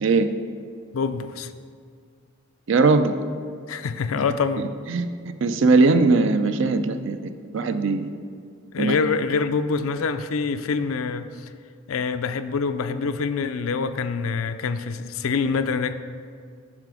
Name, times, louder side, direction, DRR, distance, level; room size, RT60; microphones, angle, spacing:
voice 1, 0.9-1.5 3.7-4.6 8.7-11.5 11.9-15.9, left 5 dB, 75° left, 10 dB, 0.4 m, -25 dB
voice 2, 2.7-3.1 4.9-8.1 8.8-9.0, right 3 dB, 60° right, 10 dB, 0.5 m, -20 dB
8.9 x 5.8 x 4.8 m, 2.1 s
head